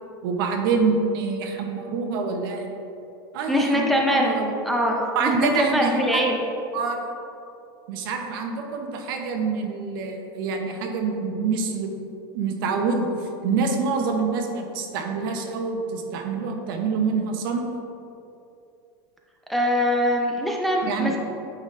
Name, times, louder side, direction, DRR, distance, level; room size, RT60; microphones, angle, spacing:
voice 1, 0.2-2.7 3.3-4.5 5.1-6.2 6.7-7.0 7.9-11.9 12.3-13.1 13.4-17.6 20.8-21.1, right 4 dB, 70° right, 3 dB, 0.9 m, -26 dB
voice 2, 3.5-4.4 4.7-6.3 19.5-21.2, equal, ahead, -1 dB, 0.5 m, -22 dB
8.7 x 4.1 x 3.2 m, 2.7 s
supercardioid pair, 150°, 12 cm